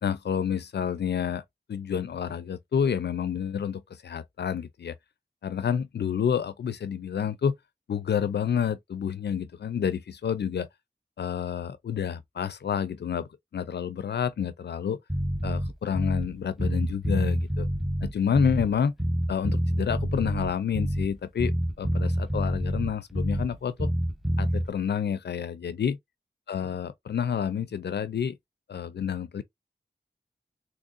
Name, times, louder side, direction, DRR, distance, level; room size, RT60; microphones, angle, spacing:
voice 1, 0.0-1.4 1.7-4.9 5.4-7.6 7.9-10.7 11.2-15.0 15.4-17.7 18.0-18.9 19.3-21.5 21.8-23.9 24.4-26.0 26.5-28.4 28.7-29.4, left 7 dB, 70° left, 0.4 m, -29 dB
Bass guitar, 15.1-16.3 16.6-18.7 19.0-21.1 21.4-23.5 23.8-24.7, equal, ahead, 0.7 m, -27 dB
3.7 x 3.0 x 2.4 m
wide cardioid pair, 80°, 18 cm